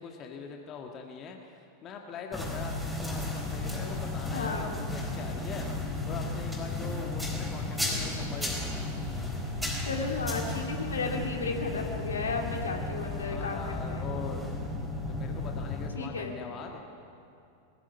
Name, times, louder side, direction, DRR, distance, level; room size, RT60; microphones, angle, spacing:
voice 1, 0.0-8.9 13.2-14.5 15.1-16.9, left 5 dB, 30° left, 2 dB, 1.6 m, -42 dB
sound 1, 2.3-15.9, left 2 dB, ahead, 4.3 m, -34 dB
voice 2, 4.3-4.7 9.9-14.0 15.9-16.3, left 4 dB, 70° left, 2 dB, 2.6 m, -34 dB
20.0 x 15.0 x 9.4 m, 2.6 s
figure-of-eight pair, 90°, 0 cm